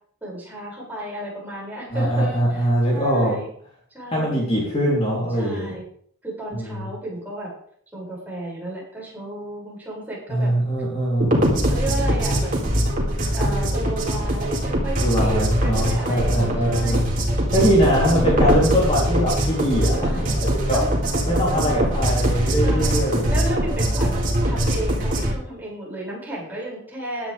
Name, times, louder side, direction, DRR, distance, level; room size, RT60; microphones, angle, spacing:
voice 1, 0.2-3.5 3.9-4.4 5.4-5.8 6.2-7.5 7.9-10.5 11.7-12.5 13.3-17.0 18.0-18.5 19.8-20.4 20.7-20.9 21.5-22.0 22.6-23.0 23.3-27.3, right 1 dB, 10° right, -6 dB, 7.0 m, -33 dB
voice 2, 1.9-3.4 4.1-5.7 6.5-6.9 10.3-11.4 15.0-17.0 17.5-20.1 20.7-20.8 21.3-23.3, equal, 30° left, -5 dB, 3.8 m, -22 dB
sound 1, 11.2-25.3, equal, 40° right, 3.7 m, -22 dB
16.5 x 11.5 x 3.7 m, 0.62 s
head